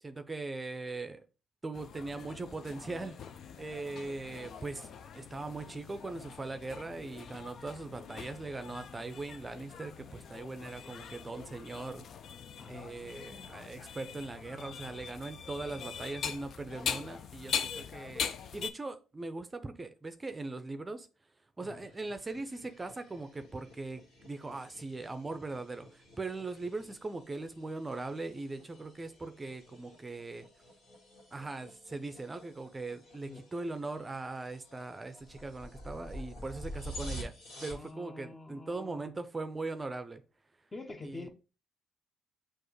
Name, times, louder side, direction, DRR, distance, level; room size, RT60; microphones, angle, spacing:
voice 1, 0.0-1.2 1.6-4.9 5.1-12.0 12.7-18.3 18.5-21.1 21.6-30.5 31.3-37.3 37.6-40.2 41.0-41.3, right 3 dB, 25° right, 0.5 m, -40 dB
sound 1, 1.7-18.7, left 7 dB, 55° left, 0.4 m, -42 dB
voice 2, 12.6-12.9 21.6-21.8 33.3-33.4 37.6-39.1 40.7-41.3, left 2 dB, 30° left, 0.9 m, -46 dB
sound 2, 21.6-37.9, equal, 75° left, 1.8 m, -49 dB
6.1 x 2.5 x 3.1 m
hypercardioid pair, 55°, 0 cm